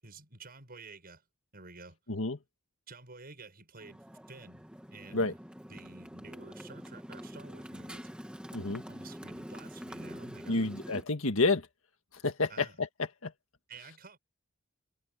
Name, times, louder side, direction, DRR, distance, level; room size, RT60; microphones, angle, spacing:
voice 1, 0.0-1.2 1.5-2.0 2.9-4.6 4.9-5.4 5.7-8.1 8.9-10.7 12.5-12.8 13.7-14.2, right 3 dB, 45° right, 7.1 m, -51 dB
Motorcycle, 3.8-11.0, equal, 5° right, 2.0 m, -45 dB
voice 2, 8.5-8.8 10.5-11.7 12.2-13.3, left 3 dB, 70° left, 1.9 m, -29 dB
head